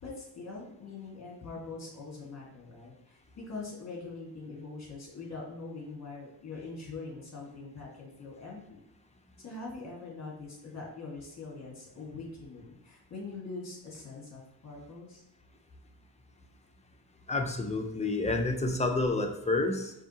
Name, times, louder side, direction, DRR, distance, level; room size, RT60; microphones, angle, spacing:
voice 1, 0.0-8.8 9.4-15.2, left 3 dB, 40° left, -2 dB, 1.5 m, -43 dB
voice 2, 17.3-19.9, left 2 dB, 15° left, 3 dB, 0.5 m, -29 dB
4.8 x 2.7 x 2.8 m, 0.84 s
cardioid pair, 95°, 41 cm